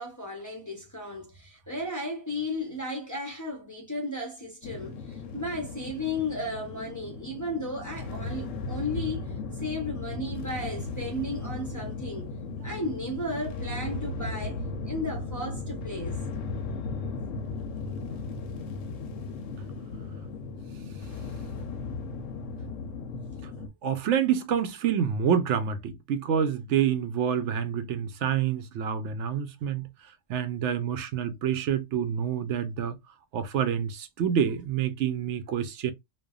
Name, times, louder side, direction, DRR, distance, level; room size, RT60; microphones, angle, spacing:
voice 1, 0.0-12.3 12.6-16.2, left 1 dB, 20° left, 0.5 m, -34 dB
sound 1, 4.6-23.7, left 3 dB, 85° left, 1.0 m, -36 dB
voice 2, 23.8-29.9 30.3-33.0 33.3-35.9, right 8 dB, 75° right, 0.9 m, -27 dB
3.3 x 2.1 x 2.2 m
omnidirectional pair, 1.3 m